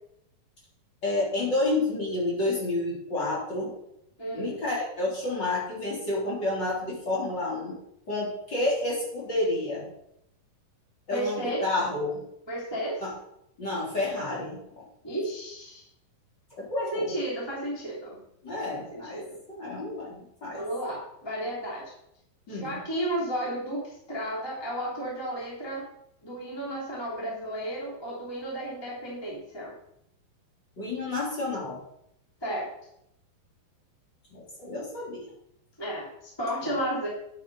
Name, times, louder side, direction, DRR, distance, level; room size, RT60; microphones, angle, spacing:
voice 1, 1.0-3.7 4.3-7.8 8.1-9.9 11.1-12.2 13.0-13.1 13.6-14.8 16.6-17.1 18.4-19.2 19.5-20.6 22.5-22.8 30.8-31.8 34.3-35.3 36.6-36.8, left 2 dB, 30° left, -5 dB, 3.9 m, -30 dB
voice 2, 4.2-4.6 11.1-11.6 12.5-13.0 15.0-15.9 16.8-18.2 18.7-19.4 20.5-21.8 22.5-25.8 26.2-29.7 32.4-32.7 35.8-37.1, right 1 dB, 5° left, -5 dB, 2.6 m, -33 dB
10.0 x 8.1 x 5.5 m, 0.77 s
omnidirectional pair, 4.3 m